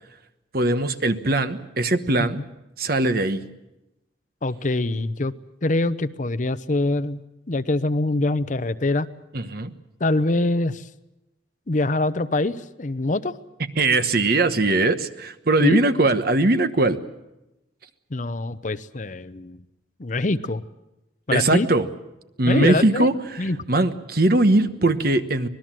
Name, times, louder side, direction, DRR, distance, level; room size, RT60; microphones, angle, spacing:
voice 1, 0.5-2.4 2.8-3.4 9.3-9.7 13.8-17.0 21.3-21.9 22.4-25.5, right 2 dB, 55° right, 10 dB, 1.2 m, -20 dB
voice 2, 4.4-5.3 5.6-7.2 7.5-9.1 10.0-10.9 11.7-13.4 15.6-15.8 18.1-19.6 20.0-20.6 21.3-21.7 22.5-23.1 23.4-23.6, left 2 dB, 45° left, 13 dB, 0.7 m, -24 dB
25.5 x 19.5 x 7.5 m, 0.93 s
head